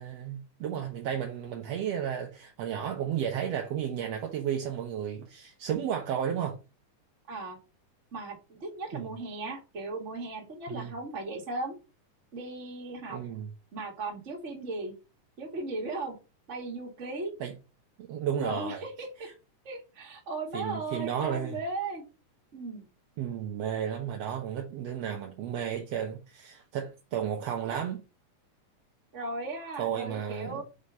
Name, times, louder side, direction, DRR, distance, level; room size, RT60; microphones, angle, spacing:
voice 1, 0.0-6.6 8.9-9.1 10.7-10.9 13.1-13.5 17.4-17.5 18.1-18.8 19.2-19.3 20.5-21.6 23.2-28.0 29.8-30.6, right 9 dB, 65° right, 1.9 m, -33 dB
voice 2, 7.3-7.6 8.1-11.8 12.3-13.2 13.7-14.9 15.4-16.1 16.5-17.3 18.4-19.3 19.6-22.0 22.5-22.9 29.1-30.6, right 2 dB, 25° right, 1.9 m, -37 dB
5.2 x 5.1 x 5.5 m
omnidirectional pair, 3.6 m